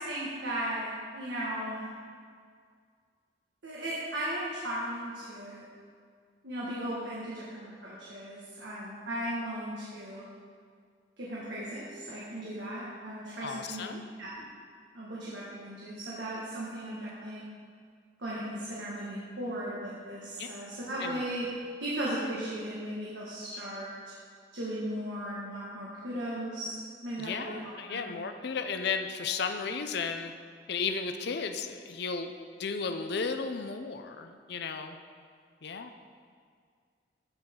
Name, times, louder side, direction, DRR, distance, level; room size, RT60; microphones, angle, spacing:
voice 1, 0.0-1.9 3.6-5.6 6.4-10.2 11.2-13.9 14.2-14.3 14.9-17.4 18.2-21.5 21.8-23.9 24.5-27.5 27.9-28.1, right 1 dB, 90° right, -7 dB, 1.7 m, -36 dB
voice 2, 13.4-14.0 20.4-20.5 21.0-21.2 27.2-30.3 30.7-32.3 32.6-35.0 35.6-35.9, left 5 dB, 65° left, 7 dB, 0.5 m, -34 dB
15.0 x 5.8 x 3.7 m, 2.1 s
head